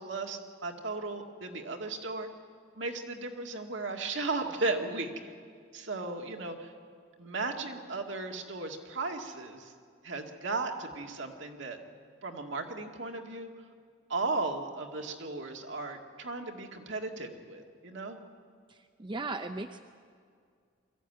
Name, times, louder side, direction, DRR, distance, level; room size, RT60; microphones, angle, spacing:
voice 1, 0.0-2.3 2.8-5.3 5.7-6.7 7.2-9.7 10.0-11.8 12.2-13.5 14.1-18.2, right 3 dB, 70° right, 3 dB, 2.0 m, -36 dB
voice 2, 18.7-19.8, right 3 dB, 25° right, 7 dB, 0.6 m, -37 dB
22.5 x 14.0 x 9.2 m, 2.1 s
head